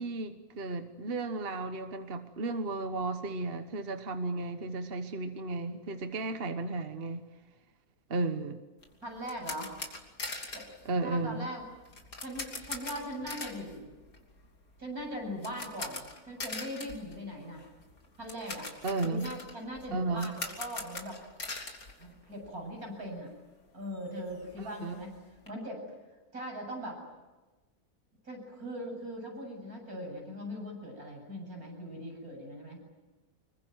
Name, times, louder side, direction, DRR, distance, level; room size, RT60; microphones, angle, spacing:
voice 1, 0.0-7.2 8.1-8.6 10.8-11.5 18.8-19.3 19.9-20.3 24.6-24.9, right 3 dB, 40° right, 8 dB, 1.4 m, -34 dB
sound 1, 8.8-22.8 23.0-23.2 23.6-23.7 23.9-25.5, left 3 dB, 80° left, 3.5 m, -43 dB
voice 2, 9.0-9.8 10.5-10.7 11.0-11.7 12.2-13.9 14.8-17.6 18.2-18.7 19.0-21.2 22.0-23.3 23.7-25.2 25.5-25.8 26.3-27.0 28.2-32.8, equal, 85° right, 1 dB, 8.7 m, -40 dB
26.0 x 23.0 x 9.3 m, 1.2 s
omnidirectional pair, 1.5 m